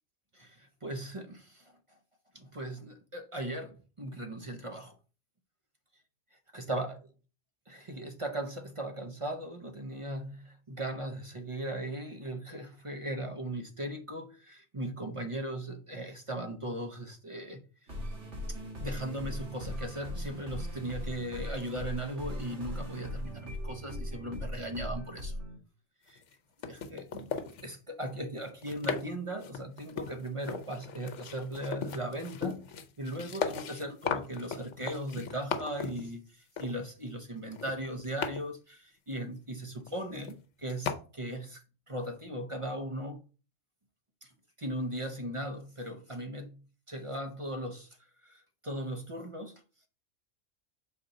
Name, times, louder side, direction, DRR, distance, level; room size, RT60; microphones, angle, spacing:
voice 1, 0.3-1.6 2.3-4.9 6.5-7.0 7.7-17.7 18.8-25.3 26.1-26.2 26.7-27.3 27.6-32.6 33.0-41.6 41.9-43.2 44.2-44.3 44.6-46.6 46.9-47.9 48.2-49.6, right 1 dB, 35° right, 0.6 m, -38 dB
sound 1, 17.9-25.6, left 1 dB, 65° right, 2.0 m, -39 dB
sound 2, 26.1-26.3 26.6-27.7 28.4-29.1 29.4-36.0 36.6-36.7 37.5-38.4 39.9-40.0 40.2-40.5 40.8-40.9, left 6 dB, 70° left, 1.0 m, -37 dB
6.5 x 4.3 x 3.9 m
omnidirectional pair, 1.3 m